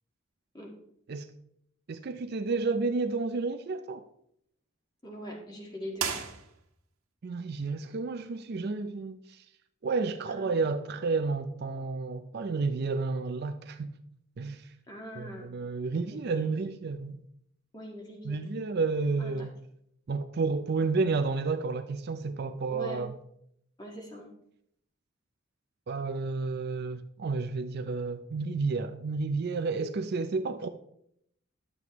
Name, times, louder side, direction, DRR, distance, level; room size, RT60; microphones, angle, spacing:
voice 1, 1.9-4.0 7.2-9.4 9.8-13.9 14.4-14.7 15.2-17.2 18.2-19.5 20.1-23.1 25.9-30.7, right 4 dB, 50° right, 0.4 m, -31 dB
voice 2, 5.0-6.1 10.2-10.6 14.9-15.5 16.1-16.6 17.7-18.4 19.2-19.5 22.7-23.0 23.8-24.3, equal, 20° left, 1.6 m, -42 dB
sound 1, 5.9-7.0, right 7 dB, 85° right, 1.4 m, -35 dB
11.0 x 7.6 x 3.0 m
head